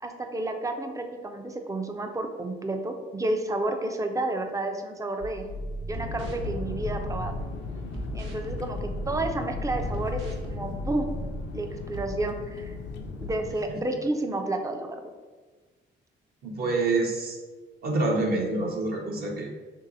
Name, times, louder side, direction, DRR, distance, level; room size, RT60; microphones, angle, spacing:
voice 1, 0.0-5.4 5.9-7.4 8.1-11.2 11.5-12.7 13.2-15.0, right 2 dB, 15° right, 5 dB, 0.4 m, -31 dB
sound 1, 5.2-7.5 7.9-11.5 11.9-12.1, right 2 dB, 80° right, 0.8 m, -36 dB
sound 2, 5.9-13.5, left 4 dB, 65° left, 0.5 m, -36 dB
voice 2, 16.4-17.4 17.8-19.5, right 2 dB, 50° right, -1 dB, 0.7 m, -27 dB
3.0 x 2.7 x 3.9 m, 1.4 s
cardioid pair, 90°, 20 cm